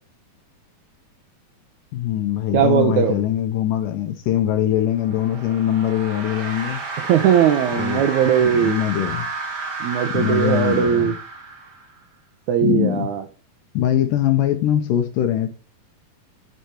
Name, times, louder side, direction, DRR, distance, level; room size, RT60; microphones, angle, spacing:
voice 1, 1.9-6.8 7.8-8.1 8.4-9.3 10.1-11.2 12.6-13.1 13.7-15.5, left 11 dB, 75° left, 2.2 m, -22 dB
voice 2, 2.5-3.2 7.1-8.8 9.8-11.1 12.5-13.2, right 9 dB, 80° right, 1.7 m, -19 dB
sound 1, 4.9-12.0, right 4 dB, 60° right, 1.1 m, -31 dB
8.0 x 4.9 x 4.4 m
omnidirectional pair, 4.2 m